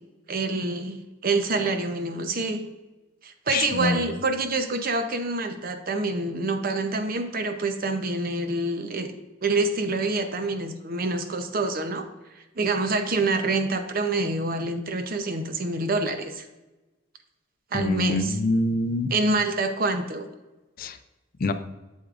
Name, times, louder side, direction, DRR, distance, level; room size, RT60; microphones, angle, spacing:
voice 1, 0.3-2.6 3.2-9.1 9.4-12.1 12.6-16.5 17.7-18.3 19.1-20.3, right 3 dB, 50° right, 8 dB, 0.7 m, -26 dB
voice 2, 3.5-4.1 17.7-19.1 20.8-21.0 21.4-21.5, left 2 dB, 45° left, 10 dB, 0.4 m, -25 dB
8.0 x 7.3 x 2.5 m, 1.1 s
head